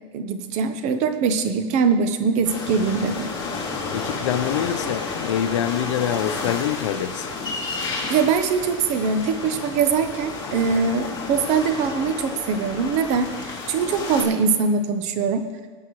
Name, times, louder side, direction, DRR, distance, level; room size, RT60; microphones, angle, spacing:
voice 1, 0.1-3.3 8.1-15.4, right 5 dB, 45° right, 8 dB, 1.0 m, -22 dB
sound 1, 2.4-14.2, left 4 dB, 25° left, 2.9 m, -31 dB
voice 2, 3.9-7.3, left 9 dB, 75° left, 10 dB, 0.8 m, -25 dB
18.0 x 8.6 x 3.2 m, 1.5 s
supercardioid pair, 120°, 16 cm